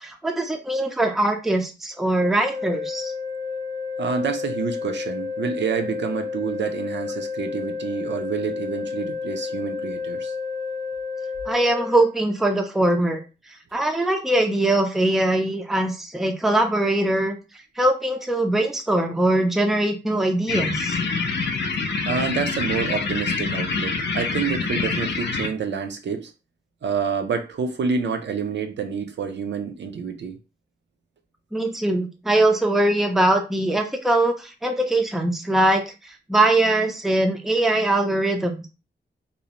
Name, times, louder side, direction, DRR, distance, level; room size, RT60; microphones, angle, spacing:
voice 1, 0.0-3.1 11.5-13.2 13.7-17.4 17.8-21.0 31.5-38.7, right 1 dB, ahead, 0.4 m, -22 dB
sound 1, 2.4-12.1, left 5 dB, 25° left, 0.7 m, -31 dB
voice 2, 4.0-10.3 22.1-26.3 26.8-30.4, right 6 dB, 75° right, 0.5 m, -28 dB
sound 2, 20.5-25.5, left 4 dB, 65° left, 0.5 m, -26 dB
2.6 x 2.0 x 2.8 m
wide cardioid pair, 120°, 19 cm